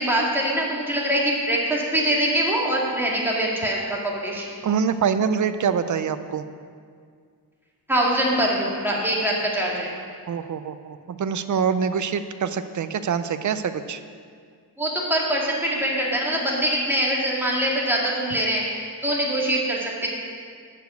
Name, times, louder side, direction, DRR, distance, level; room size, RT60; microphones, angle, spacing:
voice 1, 0.0-4.5 7.9-9.9 14.8-20.1, right 1 dB, 5° right, -4 dB, 2.0 m, -23 dB
voice 2, 4.6-6.4 10.3-14.0, right 7 dB, 45° right, 11 dB, 0.5 m, -25 dB
11.5 x 5.1 x 8.0 m, 2.1 s
wide cardioid pair, 155°, 40 cm